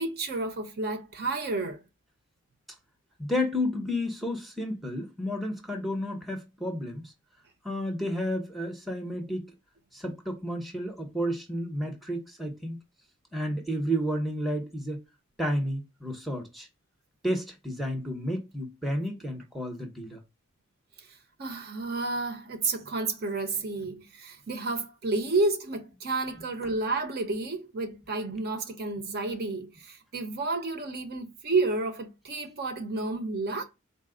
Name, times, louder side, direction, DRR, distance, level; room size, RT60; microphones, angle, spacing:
voice 1, 0.0-1.8 21.4-33.6, right 3 dB, 50° right, 0.7 m, -31 dB
voice 2, 3.2-7.1 7.6-9.5 9.9-12.8 13.3-15.0 15.4-16.7 17.2-20.2 26.6-26.7, equal, ahead, 0.7 m, -31 dB
4.1 x 2.0 x 3.6 m
head